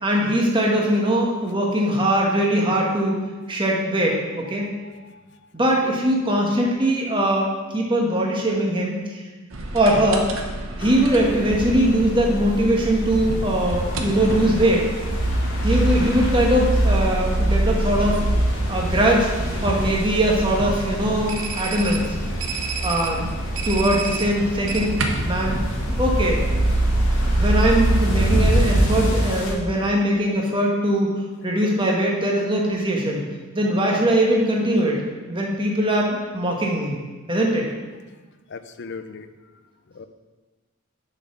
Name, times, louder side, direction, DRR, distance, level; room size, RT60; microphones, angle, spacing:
voice 1, 0.0-3.2 3.5-4.7 5.5-9.2 9.7-10.3 10.8-14.9 15.6-18.2 18.7-19.3 19.6-22.2 22.8-23.3 23.6-25.0 25.2-25.6 25.9-26.4 27.4-33.2 33.5-35.0 35.3-37.0 37.3-37.7, right 1 dB, 25° right, -1 dB, 1.4 m, -21 dB
voice 2, 4.6-5.2 38.5-39.3 39.9-40.1, left 4 dB, 60° left, 10 dB, 0.5 m, -38 dB
sound 1, 9.5-29.1, right 1 dB, 80° right, 1.0 m, -24 dB
sound 2, 10.8-29.5, equal, 80° left, 1.9 m, -29 dB
7.1 x 5.8 x 5.9 m, 1.3 s
head